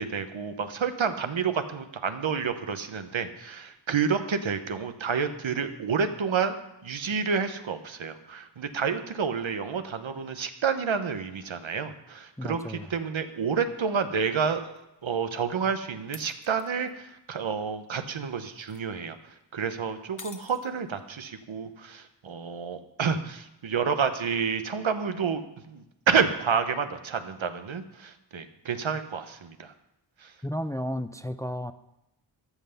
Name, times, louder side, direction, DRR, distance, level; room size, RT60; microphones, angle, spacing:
voice 1, 0.0-6.6 6.8-14.7 15.0-29.7 30.2-30.3, right 6 dB, 85° right, 9 dB, 0.9 m, -29 dB
voice 2, 12.4-12.9 30.4-31.7, equal, 10° left, 12 dB, 0.4 m, -33 dB
sound 1, 13.4-13.5 14.8-14.9 16.1-16.9 18.4-18.8 20.2-21.1, left 4 dB, 45° left, 0.8 m, -48 dB
13.0 x 5.7 x 6.9 m, 0.90 s
wide cardioid pair, 65°, 46 cm